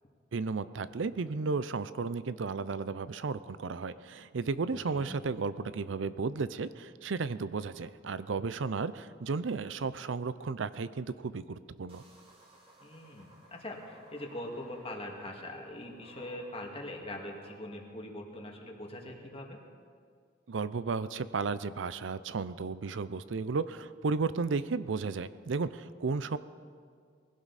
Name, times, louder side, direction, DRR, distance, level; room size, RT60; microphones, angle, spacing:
voice 1, 0.3-12.0 20.5-26.4, right 4 dB, 90° right, 15 dB, 0.5 m, -34 dB
voice 2, 4.7-5.2 12.8-19.6, left 1 dB, 30° left, 1 dB, 2.1 m, -42 dB
sound 1, 11.9-17.6, right 2 dB, 30° right, 2.6 m, -56 dB
20.5 x 16.5 x 4.2 m, 2.2 s
head